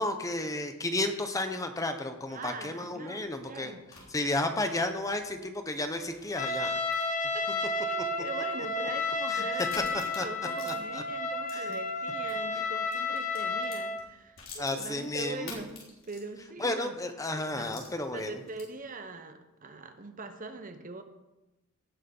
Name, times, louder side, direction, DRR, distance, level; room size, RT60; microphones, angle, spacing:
voice 1, 0.0-3.7 4.1-6.8 9.3-9.4 10.2-10.3 10.7-10.8 11.5-11.6 14.6-15.6 16.6-18.4, left 2 dB, 15° left, 7 dB, 0.9 m, -32 dB
voice 2, 2.3-3.9 6.6-6.8 7.3-15.7 16.0-17.0 17.5-17.8 18.1-21.0, right 3 dB, 40° right, 8 dB, 1.0 m, -42 dB
sound 1, 3.2-12.4 12.7-16.6 17.0-17.1 17.6-18.9, left 4 dB, 70° left, 3.9 m, -50 dB
Trumpet, 6.4-14.0, left 3 dB, 40° left, 1.1 m, -32 dB
17.5 x 6.5 x 5.4 m, 1.0 s
head